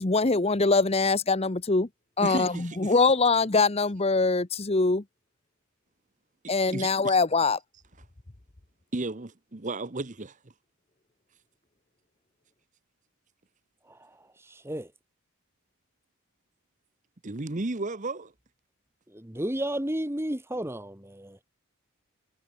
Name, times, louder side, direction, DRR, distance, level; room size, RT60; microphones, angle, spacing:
voice 1, 0.0-1.9 2.2-5.0 6.5-7.6, left 3 dB, 30° left, 0.9 m, -23 dB
voice 2, 2.2-2.9 6.4-7.2 8.9-10.4 17.2-18.3, right 2 dB, 35° right, 1.0 m, -34 dB
voice 3, 14.5-14.9 19.1-21.4, right 1 dB, 10° right, 1.8 m, -32 dB
head